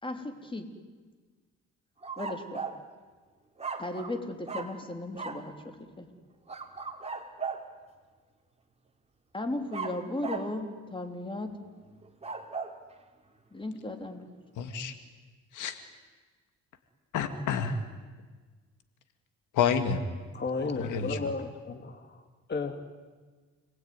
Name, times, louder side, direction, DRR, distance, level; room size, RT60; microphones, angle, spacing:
voice 1, 0.0-0.7 2.2-2.7 3.8-6.1 9.3-11.6 13.5-14.3, left 1 dB, 15° left, 5 dB, 3.5 m, -36 dB
sound 1, 2.0-2.8 3.6-4.2 4.5-4.8 5.2-5.5 6.5-7.7 9.7-10.6 12.0-12.8, right 5 dB, 20° right, 3.3 m, -37 dB
voice 2, 14.6-14.9 15.5-15.8 17.1-17.8 19.5-20.0 20.7-21.3, left 6 dB, 80° left, 8 dB, 2.2 m, -29 dB
voice 3, 20.3-22.2 22.5-22.8, left 4 dB, 35° left, 6 dB, 2.4 m, -33 dB
29.5 x 20.5 x 9.7 m, 1.4 s
cardioid pair, 90°, 30 cm